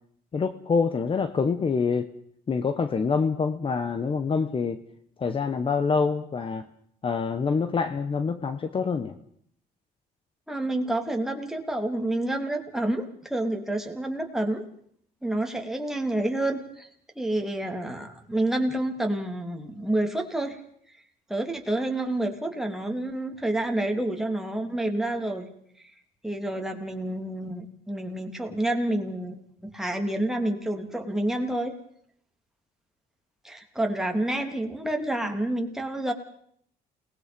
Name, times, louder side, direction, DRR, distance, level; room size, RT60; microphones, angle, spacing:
voice 1, 0.3-2.1 2.5-4.8 5.2-6.6 7.0-9.1, left 5 dB, 30° left, 10 dB, 1.2 m, -26 dB
voice 2, 10.5-14.6 15.2-16.9 17.1-20.6 21.3-25.5 26.2-31.7 33.4-36.1, right 1 dB, 5° right, 3 dB, 3.2 m, -28 dB
29.0 x 20.0 x 5.3 m, 0.65 s
cardioid pair, 110°, 17 cm